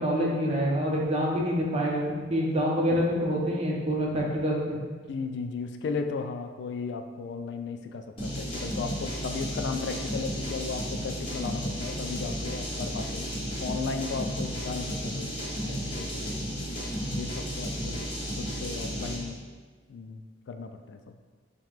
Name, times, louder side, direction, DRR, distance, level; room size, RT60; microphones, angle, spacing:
voice 1, 0.0-4.8, equal, 35° right, -3 dB, 0.7 m, -26 dB
voice 2, 5.1-13.3 13.6-15.3 15.7-16.4 17.1-18.0 18.4-19.4 19.9-20.2 20.5-21.2, left 4 dB, 65° left, 7 dB, 0.3 m, -35 dB
sound 1, 8.2-19.3, equal, 30° left, 1.2 m, -33 dB
5.6 x 2.2 x 3.1 m, 1.5 s
head